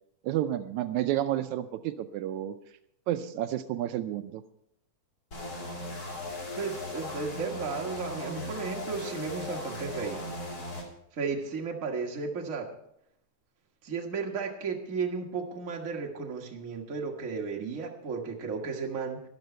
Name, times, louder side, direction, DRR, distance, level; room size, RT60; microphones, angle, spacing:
voice 1, 0.2-2.6 3.1-4.4, right 12 dB, 80° right, 9 dB, 1.9 m, -30 dB
sound 1, 5.3-10.8, left 1 dB, 30° left, 2.8 m, -38 dB
voice 2, 6.6-10.2 11.1-12.7 13.8-19.2, right 5 dB, 35° right, 1 dB, 1.5 m, -34 dB
13.0 x 12.0 x 4.4 m, 0.74 s
omnidirectional pair, 3.4 m